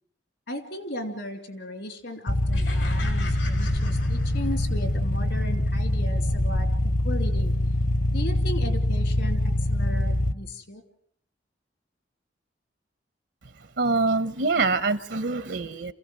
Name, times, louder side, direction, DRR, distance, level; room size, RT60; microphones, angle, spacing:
voice 1, 0.5-7.6 8.1-10.8, left 1 dB, 70° left, 2.7 m, -36 dB
sound 1, 2.3-10.3, left 1 dB, 50° left, 0.8 m, -24 dB
sound 2, 2.5-4.8, left 4 dB, 85° left, 4.0 m, -41 dB
voice 2, 13.8-15.9, right 3 dB, 80° right, 1.0 m, -25 dB
28.0 x 15.5 x 7.6 m
head